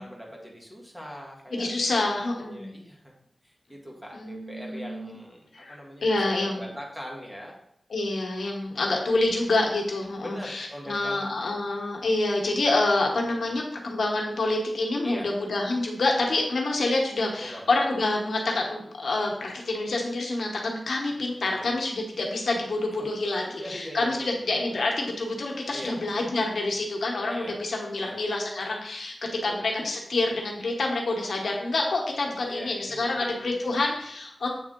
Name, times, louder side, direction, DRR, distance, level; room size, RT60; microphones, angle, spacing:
voice 1, 0.0-3.1 3.4-7.6 10.2-11.5 13.2-13.6 15.0-15.3 17.3-17.6 21.4-21.7 22.9-23.1 23.4-24.6 25.7-25.9 27.3-27.6 27.9-28.1 29.5-29.6 32.4-33.9, equal, 5° right, -2 dB, 1.6 m, -42 dB
voice 2, 1.5-2.7 4.1-5.2 5.5-6.6 7.9-29.1 29.4-34.5, left 2 dB, 75° left, 0 dB, 1.1 m, -27 dB
7.8 x 3.6 x 3.7 m, 0.75 s
wide cardioid pair, 110°, 0 cm